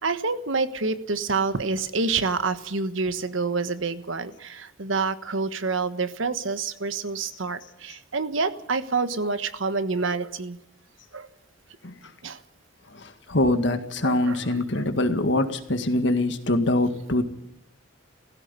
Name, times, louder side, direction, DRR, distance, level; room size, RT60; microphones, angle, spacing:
voice 1, 0.0-10.6 11.1-11.3 12.2-12.4 14.0-14.4 14.7-14.9, right 4 dB, 75° right, 11 dB, 1.3 m, -27 dB
voice 2, 12.9-17.2, left 1 dB, 60° left, 8 dB, 1.9 m, -24 dB
17.5 x 16.0 x 9.8 m, 0.79 s
head